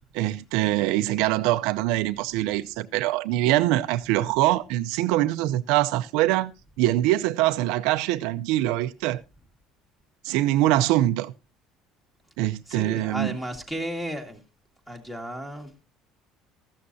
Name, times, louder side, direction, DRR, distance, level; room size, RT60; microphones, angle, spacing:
voice 1, 0.1-6.5 6.8-9.2 10.2-11.3 12.4-13.3, right 15 dB, 75° right, 0.6 m, -23 dB
voice 2, 12.7-14.4 14.9-15.8, right 1 dB, 5° left, 2.0 m, -34 dB
14.0 x 13.0 x 2.7 m
cardioid pair, 160°, 0 cm